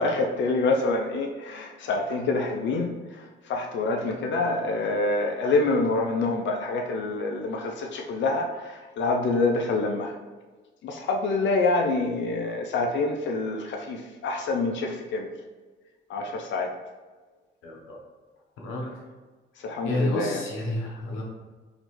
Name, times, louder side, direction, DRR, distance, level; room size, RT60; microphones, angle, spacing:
voice 1, 0.0-10.2 10.8-15.3 16.1-16.7 19.6-20.4, left 3 dB, 70° left, 3 dB, 0.5 m, -26 dB
voice 2, 17.6-18.0 18.6-18.9 19.8-21.2, left 1 dB, 85° left, -1 dB, 1.0 m, -29 dB
3.9 x 3.0 x 3.1 m, 1.3 s
cardioid pair, 90°, 20 cm